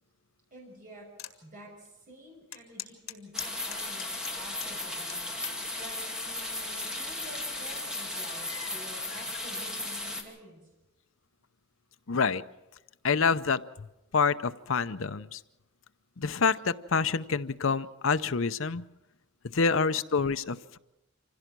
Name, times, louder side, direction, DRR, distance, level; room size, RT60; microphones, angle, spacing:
voice 1, 0.5-1.1 1.4-5.3 5.8-10.7, equal, 40° right, 0 dB, 6.2 m, -50 dB
sound 1, 1.2-1.4 1.8-1.9 2.5-4.7 5.1-5.6 6.3-6.6, left 11 dB, 80° left, 1.8 m, -41 dB
sound 2, 3.3-10.2, left 2 dB, 5° right, 2.4 m, -36 dB
voice 2, 12.1-12.4 13.0-13.9 14.1-15.4 16.2-18.8 19.5-20.8, left 5 dB, 65° left, 12 dB, 0.7 m, -27 dB
26.0 x 16.5 x 6.1 m, 0.95 s
head